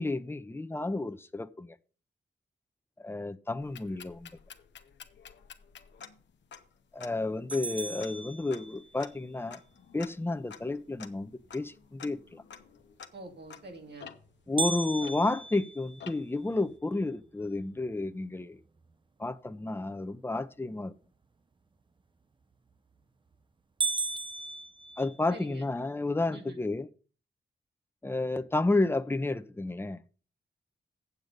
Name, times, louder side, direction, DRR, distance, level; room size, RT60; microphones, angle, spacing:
voice 1, 0.0-1.8 3.0-4.3 6.9-9.6 9.9-12.4 14.5-18.6 19.2-20.9 25.0-26.9 28.0-30.0, left 2 dB, 15° left, 0.7 m, -31 dB
sound 1, 3.6-15.6 16.0-16.5, left 7 dB, 85° left, 0.9 m, -51 dB
sound 2, 7.5-9.1 14.6-16.7 17.2-17.3 17.8-17.9 18.6-18.9 22.5-22.9 23.3-23.4 23.8-25.5, right 4 dB, 25° right, 0.6 m, -36 dB
voice 2, 13.1-14.1 25.3-25.7 26.3-26.6, right 3 dB, 65° right, 2.0 m, -46 dB
8.2 x 7.5 x 5.2 m
cardioid pair, 85°, 18 cm